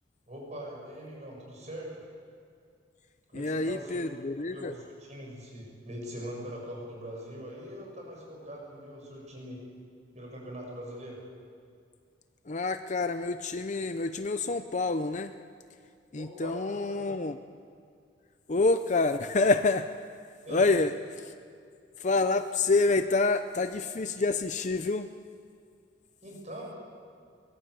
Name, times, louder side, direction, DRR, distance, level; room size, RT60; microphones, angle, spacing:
voice 1, 0.3-2.0 3.3-4.0 4.4-9.6 10.1-11.2 16.2-17.1 20.5-20.8 26.2-26.7, equal, 40° right, -2 dB, 7.6 m, -42 dB
voice 2, 3.3-4.7 12.5-15.3 16.1-17.4 18.5-19.9 20.5-20.9 21.2-21.3 22.0-25.1, left 3 dB, 40° left, 9 dB, 0.6 m, -27 dB
23.0 x 20.0 x 8.6 m, 2.3 s
head